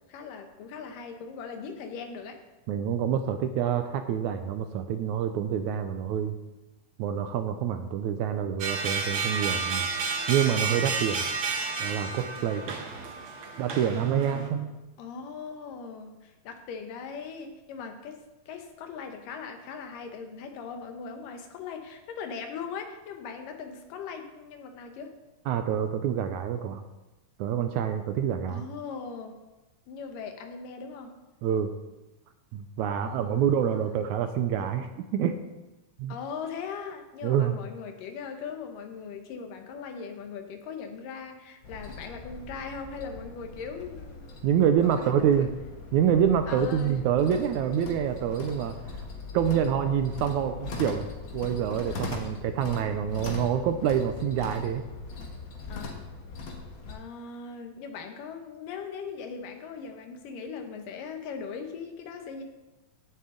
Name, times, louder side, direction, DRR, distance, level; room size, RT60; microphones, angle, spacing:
voice 1, 0.1-2.4 15.0-25.2 28.5-29.4 29.9-31.1 33.1-34.1 36.1-44.3 44.8-45.5 46.5-47.0 55.7-55.9 56.9-62.4, left 5 dB, 85° left, 5 dB, 2.7 m, -39 dB
voice 2, 2.7-6.4 7.0-9.9 10.3-11.2 11.8-12.8 13.6-14.7 25.5-26.8 27.4-28.6 31.4-31.7 32.5-35.4 36.0-36.1 37.2-37.6 44.4-45.5 45.9-48.7 49.3-51.1 51.3-54.8, right 9 dB, 75° right, 8 dB, 1.8 m, -26 dB
sound 1, 8.6-14.5, right 5 dB, 60° right, 1.3 m, -31 dB
sound 2, 41.6-56.9, left 3 dB, 50° left, 1.4 m, -40 dB
16.5 x 7.0 x 3.8 m, 1.1 s
omnidirectional pair, 3.8 m